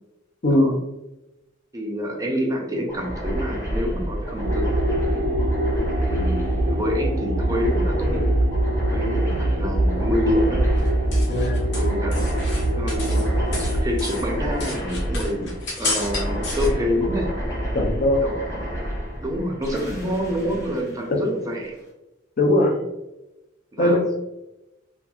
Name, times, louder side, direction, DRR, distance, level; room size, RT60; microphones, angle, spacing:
voice 1, 0.4-0.7 11.3-11.8 17.7-18.2 22.4-22.7 23.8-24.2, left 1 dB, 45° left, 1 dB, 0.5 m, -20 dB
voice 2, 1.7-4.6 6.0-8.3 8.9-10.6 11.7-12.2 12.5-13.3 13.5-15.5 15.8-17.3 18.2-18.4 19.2-21.7 23.7-24.0, equal, 15° right, 1 dB, 0.4 m, -27 dB
sound 1, 2.9-21.7, equal, 15° left, 0.8 m, -30 dB
sound 2, 4.4-13.8, right 1 dB, 85° right, 0.6 m, -23 dB
sound 3, 10.8-13.3 13.5-16.7, left 3 dB, 60° left, 0.9 m, -32 dB
2.9 x 2.4 x 2.3 m, 0.96 s
head